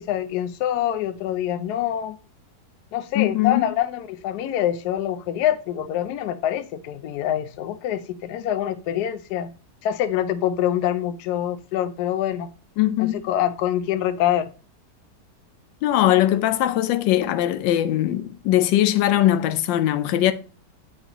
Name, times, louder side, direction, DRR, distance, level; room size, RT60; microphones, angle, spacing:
voice 1, 0.0-2.2 2.9-9.5 9.8-12.5 13.0-14.5, left 11 dB, 70° left, 1.0 m, -25 dB
voice 2, 3.1-3.7 12.8-13.2 15.8-20.3, left 13 dB, 90° left, 1.3 m, -20 dB
8.2 x 4.9 x 2.9 m
omnidirectional pair, 1.9 m